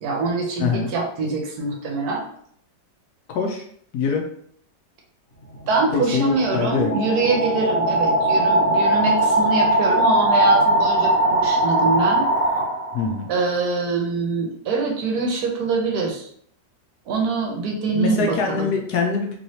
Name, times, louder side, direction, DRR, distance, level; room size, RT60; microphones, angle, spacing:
voice 1, 0.0-2.2 5.7-12.3 13.3-16.3 17.1-18.7, right 4 dB, 70° right, 1 dB, 1.1 m, -24 dB
voice 2, 0.6-0.9 3.3-3.6 3.9-4.2 5.9-6.9 12.9-13.3 17.9-19.4, left 5 dB, 70° left, 2 dB, 1.0 m, -23 dB
sound 1, 5.4-13.2, right 1 dB, 55° left, 1.2 m, -20 dB
3.1 x 3.0 x 2.7 m, 0.63 s
omnidirectional pair, 1.9 m